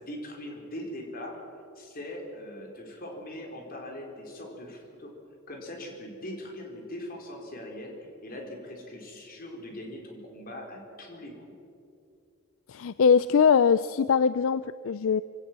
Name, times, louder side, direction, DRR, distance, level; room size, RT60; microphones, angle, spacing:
voice 1, 0.0-1.4 1.7-5.1 5.5-8.0 8.2-11.5, left 1 dB, 45° left, 1 dB, 4.4 m, -41 dB
voice 2, 12.7-15.2, left 6 dB, 70° left, 15 dB, 0.4 m, -22 dB
25.0 x 17.5 x 7.5 m, 2.5 s
head